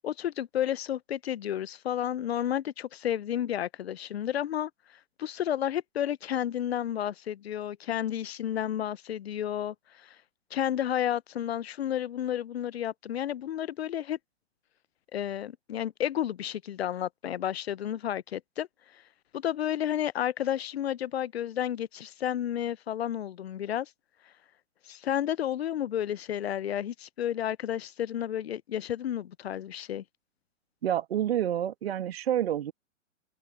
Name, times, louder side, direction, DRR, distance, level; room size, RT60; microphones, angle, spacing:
voice 1, 0.0-4.7 5.2-10.2 10.5-14.2 15.1-18.7 19.3-23.9 24.9-30.0, left 10 dB, 55° left, 0.8 m, -31 dB
voice 2, 30.8-32.7, right 11 dB, 55° right, 2.5 m, -28 dB
open air
figure-of-eight pair, 115°, 38 cm